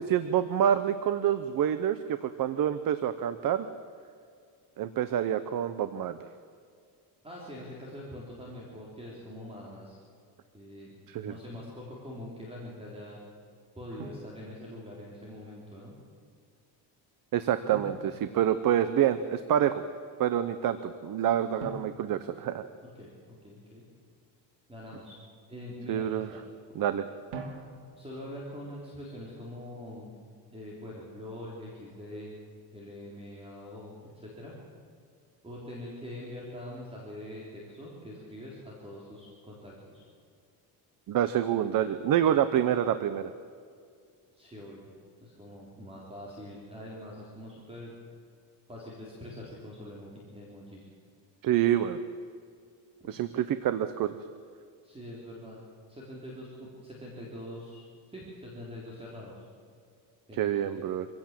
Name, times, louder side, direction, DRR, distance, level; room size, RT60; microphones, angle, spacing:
voice 1, 0.1-3.7 4.8-6.2 11.1-11.3 17.3-19.7 20.2-22.6 25.9-26.3 26.7-27.1 41.1-43.3 51.4-52.0 53.1-54.2 60.3-61.1, right 10 dB, 55° right, 11 dB, 1.0 m, -27 dB
voice 2, 7.2-10.0 10.5-11.0 11.2-13.2 13.8-16.0 22.8-23.8 24.7-25.2 25.5-26.4 28.0-30.1 30.5-32.4 32.7-34.5 35.4-40.1 44.3-44.9 45.2-47.9 48.7-50.1 50.3-50.8 54.8-55.6 55.9-59.4 60.3-60.8, left 1 dB, 15° right, -4 dB, 3.9 m, -44 dB
Drum, 11.5-11.8 14.0-15.1 17.7-19.1 21.6-23.3 27.3-28.3, right 3 dB, 90° right, 2.8 m, -45 dB
25.5 x 16.5 x 7.6 m, 2.2 s
cardioid pair, 150°, 41 cm